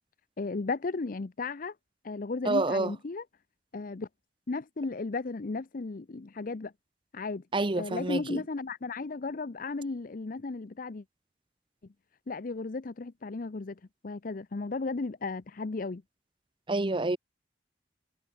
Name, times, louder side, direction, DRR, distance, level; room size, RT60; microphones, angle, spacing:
voice 1, 0.4-1.7 2.0-3.2 3.7-4.1 4.5-6.7 7.1-7.4 7.8-11.0 12.3-16.0, left 3 dB, 50° left, 0.6 m, -35 dB
voice 2, 2.4-2.9 7.5-8.4 16.7-17.2, right 2 dB, 30° right, 0.9 m, -28 dB
head